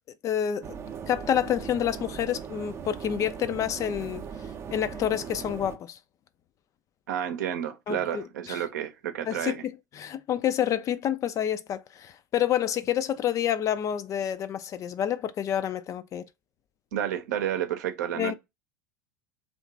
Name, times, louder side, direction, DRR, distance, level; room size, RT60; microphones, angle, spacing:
voice 1, 0.2-0.8 1.1-4.2 4.7-6.0 7.9-8.6 9.3-16.3 18.1-18.3, left 10 dB, 30° left, 0.4 m, -28 dB
sound 1, 0.6-5.8, right 7 dB, 25° right, 0.5 m, -39 dB
voice 2, 7.1-9.6 16.9-18.3, right 10 dB, 65° right, 0.7 m, -30 dB
2.9 x 2.4 x 3.6 m
figure-of-eight pair, 75°, 10 cm